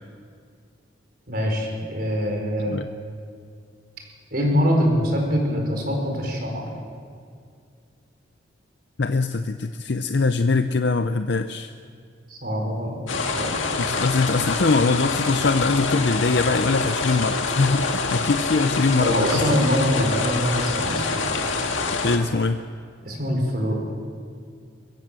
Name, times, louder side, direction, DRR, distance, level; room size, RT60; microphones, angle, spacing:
voice 1, 1.3-2.8 4.3-6.7 12.3-13.7 19.0-21.2 23.0-23.9, equal, 50° right, 1 dB, 4.9 m, -24 dB
voice 2, 9.0-11.7 13.8-19.6 22.0-22.6, left 3 dB, 60° left, 8 dB, 0.6 m, -22 dB
sound 1, 13.1-22.2, left 4 dB, 90° left, 1.9 m, -26 dB
22.5 x 16.0 x 7.6 m, 2.2 s
head